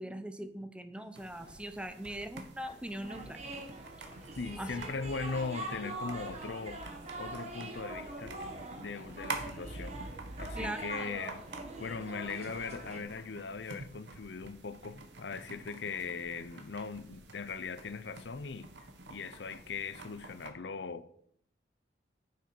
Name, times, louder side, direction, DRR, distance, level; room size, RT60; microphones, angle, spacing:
voice 1, 0.0-3.4 4.0-4.1 4.6-4.7 10.6-10.8, right 1 dB, 5° right, 0.6 m, -41 dB
Run, 0.9-13.2, equal, 25° left, 3.2 m, -63 dB
sound 1, 1.2-20.5, right 3 dB, 80° right, 1.4 m, -49 dB
sound 2, 3.0-13.0, right 2 dB, 40° right, 1.6 m, -43 dB
voice 2, 4.3-6.8 7.2-8.4 8.8-10.0 10.4-11.4 11.8-21.1, left 4 dB, 75° left, 0.6 m, -39 dB
9.3 x 7.3 x 4.5 m
head